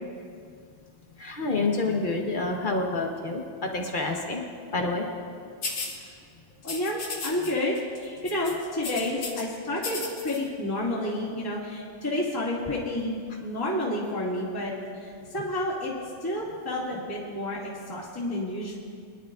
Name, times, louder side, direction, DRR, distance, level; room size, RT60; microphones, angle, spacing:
voice 1, 1.2-4.4 4.7-5.1, left 3 dB, 35° left, 1 dB, 0.8 m, -28 dB
sound 1, 5.6-6.0 6.6-7.5 7.8-8.0 8.3-9.4 9.8-10.4, left 4 dB, 60° left, 2.0 m, -34 dB
voice 2, 6.6-15.9 16.2-18.8, left 1 dB, 10° left, -7 dB, 2.2 m, -30 dB
23.5 x 11.0 x 2.6 m, 2.2 s
omnidirectional pair, 2.3 m